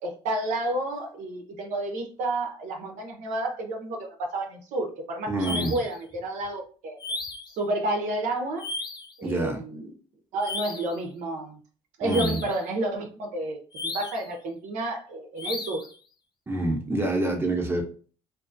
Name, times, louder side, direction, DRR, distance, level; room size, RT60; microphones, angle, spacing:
voice 1, 0.0-7.0 7.6-8.7 9.2-9.9 10.3-11.6 12.0-15.8, right 2 dB, 75° right, 3 dB, 0.6 m, -30 dB
voice 2, 5.3-5.7 9.2-9.6 12.0-12.4 16.5-17.8, right 2 dB, 20° right, 2 dB, 0.8 m, -27 dB
sound 1, 5.4-6.0 7.0-7.6 8.6-9.1 10.4-11.0 12.1-12.6 13.7-14.3 15.4-15.9, left 3 dB, 35° left, 0.6 m, -34 dB
2.6 x 2.4 x 2.5 m, 0.39 s
supercardioid pair, 70°, 13 cm